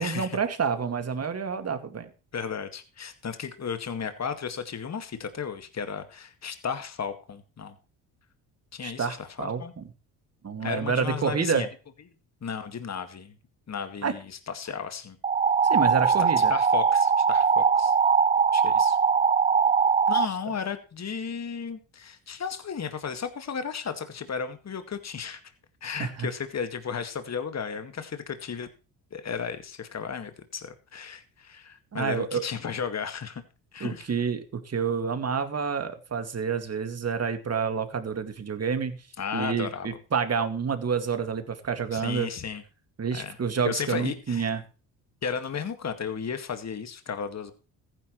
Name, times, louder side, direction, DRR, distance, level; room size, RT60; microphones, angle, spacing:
voice 1, 0.0-2.1 8.8-9.8 10.4-11.6 14.0-14.1 15.6-16.5 26.0-26.3 31.9-32.4 33.8-39.1 39.3-42.3 43.0-44.6, right 6 dB, 35° right, 8 dB, 2.3 m, -28 dB
voice 2, 2.3-7.7 8.7-9.7 10.6-11.7 12.4-13.3 13.7-14.2 14.5-15.2 16.1-17.9 18.5-19.0 20.1-25.4 25.8-28.7 29.1-33.4 33.7-34.1 39.2-40.0 41.9-42.6 43.1-43.4 43.6-44.5 45.2-47.5, left 6 dB, 40° left, 9 dB, 2.1 m, -34 dB
sound 1, 15.2-20.3, right 6 dB, 20° right, 0.4 m, -21 dB
15.0 x 10.0 x 3.2 m, 0.35 s
supercardioid pair, 65°, 43 cm